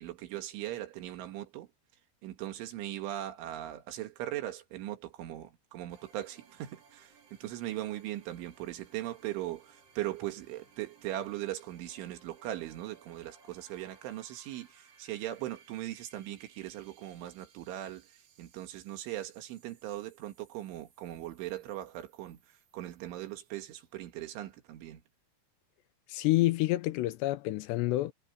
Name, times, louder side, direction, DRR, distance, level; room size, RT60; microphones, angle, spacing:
voice 1, 0.0-1.7 2.2-7.1 7.4-25.0, right 14 dB, 90° right, 4.3 m, -39 dB
sound 1, 5.9-24.4, right 5 dB, 60° right, 6.1 m, -62 dB
voice 2, 26.1-28.1, left 17 dB, 80° left, 2.7 m, -28 dB
omnidirectional pair, 5.3 m